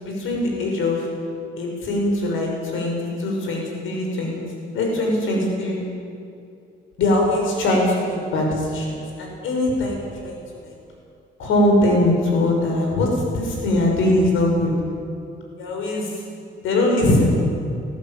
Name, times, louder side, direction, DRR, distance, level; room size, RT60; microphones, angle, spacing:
voice 1, 0.0-1.1 1.6-2.9 3.2-4.4 4.7-5.8 7.0-10.4 10.6-10.7 11.4-13.1 13.3-14.7 15.6-16.1 16.6-17.4, left 1 dB, 85° left, 0 dB, 6.2 m, -21 dB
20.0 x 14.5 x 9.3 m, 2.5 s
cardioid pair, 90°, 20 cm